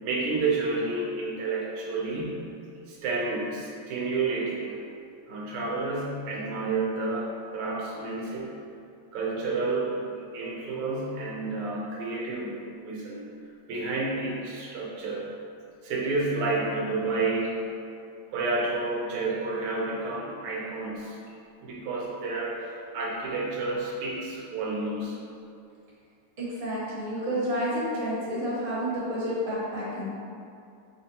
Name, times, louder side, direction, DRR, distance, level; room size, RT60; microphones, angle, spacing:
voice 1, 0.0-2.4 2.9-4.8 5.3-8.5 9.1-10.0 10.3-13.3 13.7-15.3 15.8-17.7 18.3-21.2 21.6-25.2, right 3 dB, 85° right, -4 dB, 1.7 m, -30 dB
voice 2, 26.4-30.1, equal, 30° right, -9 dB, 1.3 m, -30 dB
5.1 x 3.5 x 2.8 m, 2.5 s
omnidirectional pair, 2.4 m